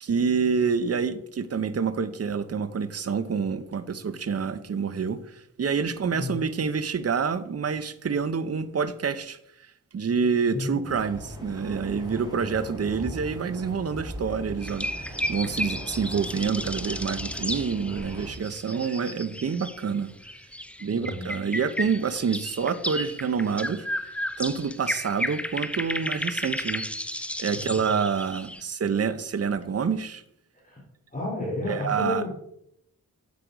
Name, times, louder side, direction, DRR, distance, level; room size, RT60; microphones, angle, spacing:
voice 1, 0.0-9.4 9.9-20.1 20.8-26.8 27.4-30.2 31.7-32.2, right 6 dB, 45° right, 0.7 m, -27 dB
voice 2, 10.5-11.0 12.1-12.4 20.9-21.2 27.5-27.6 30.6-30.8 31.1-32.3, left 1 dB, 25° left, 2.9 m, -32 dB
sound 1, 10.8-18.3, equal, 10° right, 3.3 m, -39 dB
sound 2, 14.6-19.9 20.2-28.6, left 1 dB, 5° left, 0.6 m, -33 dB
8.4 x 7.7 x 5.0 m
wide cardioid pair, 80°, 34 cm